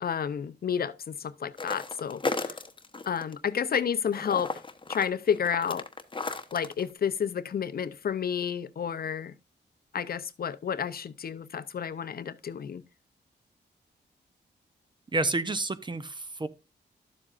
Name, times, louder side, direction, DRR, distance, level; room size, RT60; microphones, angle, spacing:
voice 1, 0.0-2.6 3.1-4.5 4.9-5.9 6.5-9.3 9.9-12.8, left 7 dB, 55° left, 0.6 m, -30 dB
sound 1, 1.6-3.3 3.7-6.8, left 3 dB, 25° left, 0.9 m, -34 dB
voice 2, 15.1-16.5, right 2 dB, 25° right, 0.7 m, -29 dB
12.0 x 7.4 x 2.5 m
cardioid pair, 85°, 18 cm